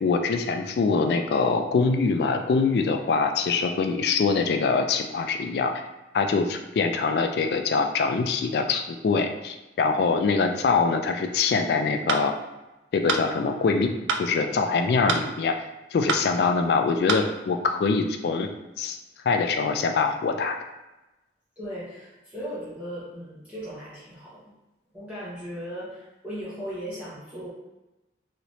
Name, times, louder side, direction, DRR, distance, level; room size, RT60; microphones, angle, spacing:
voice 1, 0.0-5.7 6.1-12.3 12.9-13.9 14.2-15.5 15.9-18.5 18.8-19.0 19.2-20.5, left 4 dB, 60° left, 5 dB, 0.3 m, -24 dB
sound 1, 12.1-12.3 13.1-13.3 14.1-14.3 15.1-15.3 16.1-16.3 17.1-17.3, right 4 dB, 85° right, 0.4 m, -25 dB
voice 2, 21.6-24.5 24.9-27.5, equal, 5° right, -12 dB, 0.9 m, -37 dB
3.1 x 2.9 x 2.7 m, 1.0 s
head